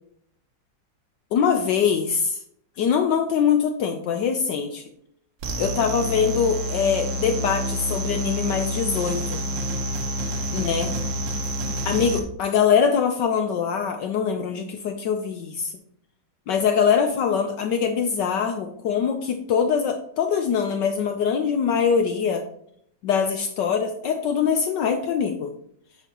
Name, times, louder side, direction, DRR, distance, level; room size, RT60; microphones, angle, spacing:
voice 1, 1.3-2.4 2.8-4.9 5.6-9.4 10.5-11.0 11.8-15.7 16.5-22.4 23.0-25.5, left 7 dB, 70° left, 5 dB, 1.1 m, -23 dB
sound 1, 5.4-12.2, equal, 70° right, 1.6 m, -28 dB
8.2 x 5.3 x 2.9 m, 0.69 s
omnidirectional pair, 2.2 m